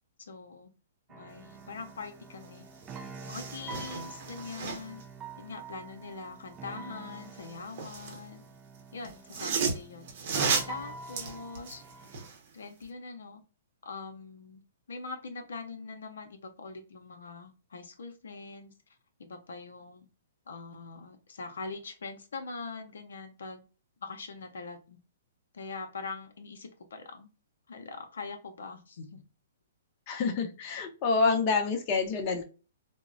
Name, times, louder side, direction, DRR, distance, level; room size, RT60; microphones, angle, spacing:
voice 1, 0.2-0.7 1.1-2.7 3.2-5.0 5.4-8.4 8.9-10.1 10.7-11.8 12.5-13.4 13.8-14.6 14.9-18.7 19.2-20.1 20.5-23.6 24.0-25.0 25.5-27.3 27.7-29.2, left 4 dB, 80° left, 5 dB, 0.6 m, -43 dB
sound 1, 1.1-12.3, right 4 dB, 20° right, 0.3 m, -47 dB
sound 2, 2.4-2.5 2.8-5.0 7.2-8.2 9.0-12.4 12.8-12.9, right 5 dB, 55° right, 0.8 m, -34 dB
voice 2, 30.1-32.4, left 4 dB, 35° left, 3 dB, 0.6 m, -27 dB
3.6 x 2.0 x 2.5 m, 0.34 s
hypercardioid pair, 135°, 0 cm